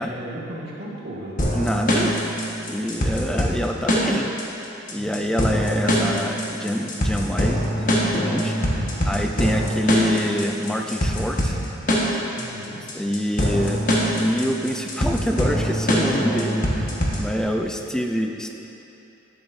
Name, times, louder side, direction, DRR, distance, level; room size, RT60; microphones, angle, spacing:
voice 1, 0.0-1.4 3.0-3.4 4.9-5.3 12.4-13.0 16.9-17.0 17.6-17.8, right 1 dB, 55° right, -6 dB, 1.8 m, -38 dB
sound 1, 1.4-17.4, equal, 40° left, 1.3 m, -23 dB
voice 2, 1.5-2.2 2.7-4.3 4.9-8.8 9.1-11.6 12.9-13.8 14.1-18.6, equal, 5° left, 3 dB, 0.5 m, -26 dB
11.5 x 10.5 x 2.7 m, 3.0 s
head